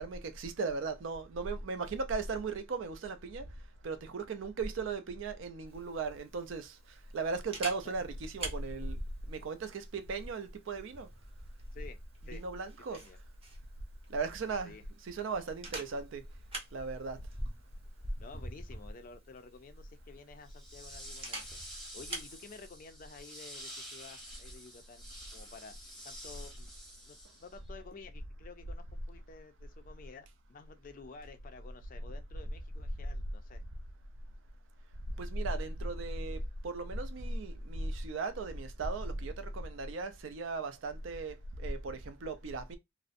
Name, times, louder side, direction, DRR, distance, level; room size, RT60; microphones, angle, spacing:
voice 1, 0.0-3.5 3.8-6.8 7.1-9.0 9.3-11.1 12.3-13.0 14.1-14.7 15.0-16.2 16.7-17.2 35.2-42.8, right 3 dB, 70° right, 0.4 m, -37 dB
Camera, 5.7-22.4, right 1 dB, 30° right, 0.7 m, -46 dB
voice 2, 18.2-21.6 21.9-25.0 25.3-25.7 26.0-26.7 27.0-33.6, left 4 dB, 40° left, 0.4 m, -52 dB
sound 1, 20.4-27.7, equal, ahead, 0.8 m, -49 dB
2.4 x 2.0 x 2.5 m
head